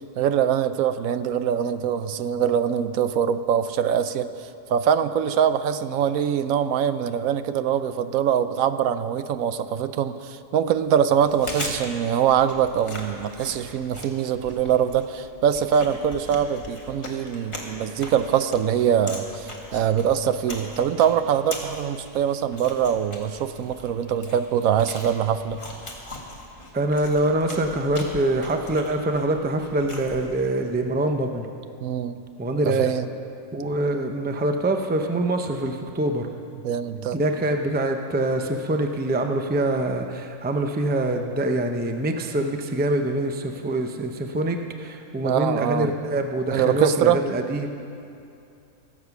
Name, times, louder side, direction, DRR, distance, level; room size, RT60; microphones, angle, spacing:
voice 1, 0.2-25.6 31.8-32.2 32.7-33.1 36.6-37.2 45.2-45.9 46.5-47.2, right 8 dB, 80° right, 12 dB, 1.0 m, -23 dB
Chewing mastication, 11.1-30.6, left 1 dB, 20° left, 1.6 m, -40 dB
voice 2, 26.7-31.5 32.4-32.9 33.5-36.3 37.1-47.7, right 1 dB, 15° right, 5 dB, 0.4 m, -25 dB
21.5 x 7.4 x 5.9 m, 2.6 s
omnidirectional pair, 1.4 m